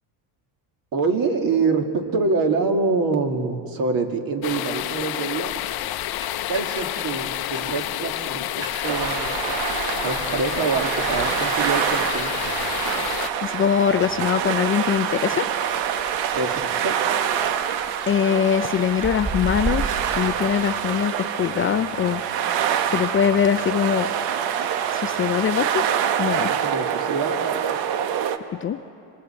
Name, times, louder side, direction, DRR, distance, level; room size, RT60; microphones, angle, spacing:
voice 1, 0.9-5.5 6.5-9.4 10.0-12.4 16.4-17.0 26.6-27.8, right 4 dB, 50° right, 4 dB, 2.2 m, -25 dB
sound 1, 4.4-13.3, left 14 dB, 60° left, 0.8 m, -29 dB
sound 2, 5.6-20.3, right 3 dB, 25° right, 6.6 m, -37 dB
sound 3, 8.8-28.4, right 9 dB, 85° right, 1.1 m, -26 dB
voice 2, 13.4-15.5 17.4-17.6 18.1-22.2 22.9-24.1 24.9-25.8 26.2-26.5 28.6-28.8, left 8 dB, 30° left, 10 dB, 0.5 m, -22 dB
28.0 x 25.0 x 4.5 m, 2.6 s
cardioid pair, 120°, 43 cm